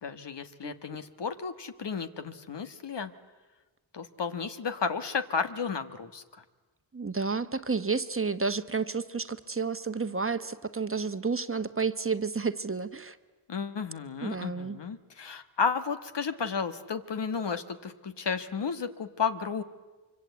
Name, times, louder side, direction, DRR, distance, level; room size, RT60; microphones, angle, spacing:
voice 1, 0.0-3.1 3.9-6.4 13.5-19.6, left 5 dB, 60° left, 9 dB, 1.6 m, -33 dB
voice 2, 6.9-13.2 14.2-14.8, right 4 dB, 30° right, 10 dB, 1.2 m, -31 dB
25.0 x 24.5 x 8.4 m, 1.3 s
cardioid pair, 60°, 46 cm